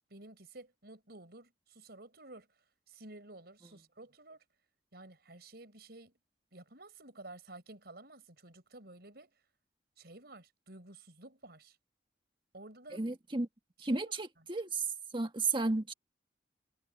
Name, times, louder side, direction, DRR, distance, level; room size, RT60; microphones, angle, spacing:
voice 1, 0.1-2.5 2.9-4.5 4.9-6.1 6.5-9.3 10.0-11.8 12.5-13.1 13.8-14.1, right 2 dB, 65° right, 6.2 m, -52 dB
voice 2, 12.9-13.5 13.8-14.9 15.1-15.9, right 3 dB, 30° right, 1.6 m, -33 dB
head